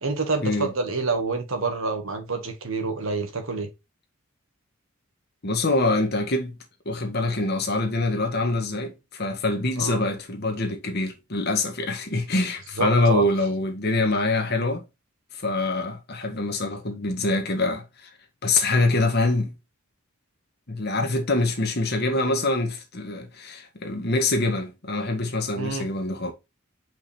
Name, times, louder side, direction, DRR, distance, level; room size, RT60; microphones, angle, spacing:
voice 1, 0.0-3.7 9.8-10.0 12.8-13.2 25.6-25.9, right 3 dB, 70° right, 1.6 m, -27 dB
voice 2, 5.4-6.6 6.9-14.8 15.4-18.1 18.4-19.5 20.7-26.3, left 2 dB, 50° left, 1.7 m, -25 dB
6.3 x 5.2 x 3.3 m
head